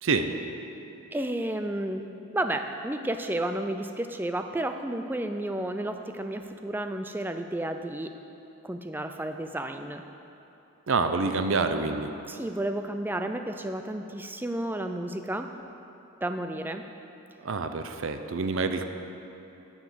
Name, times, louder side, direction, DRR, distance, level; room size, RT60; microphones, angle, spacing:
voice 1, 0.0-0.3 10.9-12.1 17.4-18.8, right 4 dB, 65° right, 8 dB, 0.5 m, -27 dB
voice 2, 1.1-2.0 2.3-8.1 8.6-10.0 12.3-15.5 16.2-16.8, right 1 dB, 10° right, 7 dB, 0.3 m, -32 dB
9.7 x 7.2 x 6.8 m, 3.0 s
head